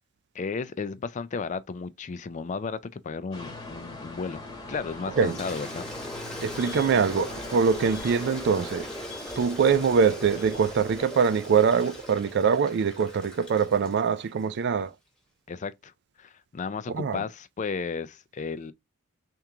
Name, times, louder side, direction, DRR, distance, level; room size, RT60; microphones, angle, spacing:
voice 1, 0.3-4.4 4.7-5.9 15.5-15.9 16.2-18.7, left 5 dB, 35° left, 0.4 m, -34 dB
sound 1, 3.3-11.0, left 2 dB, 20° left, 1.1 m, -41 dB
Toilet flush, 5.1-14.5, equal, 5° left, 1.2 m, -40 dB
voice 2, 6.4-8.9 9.4-14.9 16.9-17.2, right 6 dB, 55° right, 0.4 m, -23 dB
3.5 x 2.9 x 3.6 m
head